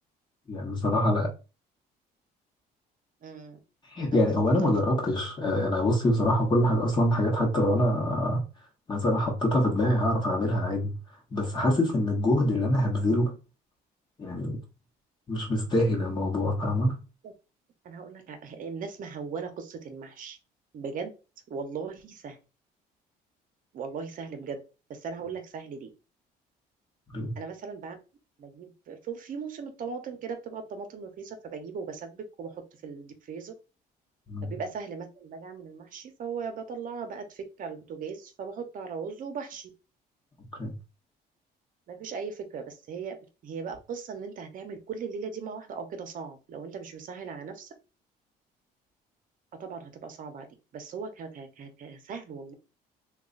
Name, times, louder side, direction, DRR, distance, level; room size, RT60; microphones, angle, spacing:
voice 1, 0.5-1.3 3.8-8.4 8.9-10.9 11.3-13.3 14.2-14.6 15.3-17.0 27.1-27.3 34.3-34.5 40.6-40.7, left 1 dB, 25° left, 1.0 m, -25 dB
voice 2, 3.2-3.6 4.6-5.0 17.2-17.3 17.8-20.4 20.7-21.1 21.5-22.4 23.7-24.6 24.9-25.9 27.4-28.0 28.4-33.5 34.4-39.7 41.9-47.7 49.6-50.5 50.7-52.5, right 5 dB, 55° right, 0.8 m, -38 dB
3.0 x 2.4 x 3.8 m
cardioid pair, 110°, 17 cm